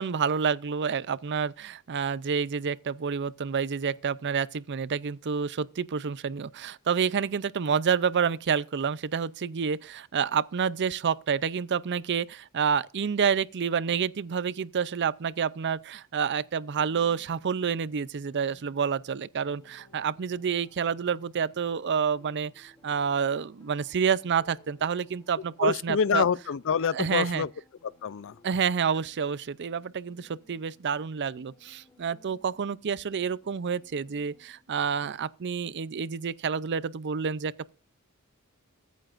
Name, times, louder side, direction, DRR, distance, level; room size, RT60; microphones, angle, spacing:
voice 1, 0.0-26.2 26.9-27.4 28.4-37.7, right 6 dB, 50° right, 0.5 m, -28 dB
sound 1, 16.6-35.1, left 2 dB, 15° left, 2.7 m, -61 dB
voice 2, 25.6-27.5 28.0-28.4, left 7 dB, 60° left, 0.5 m, -26 dB
22.0 x 9.2 x 2.5 m
head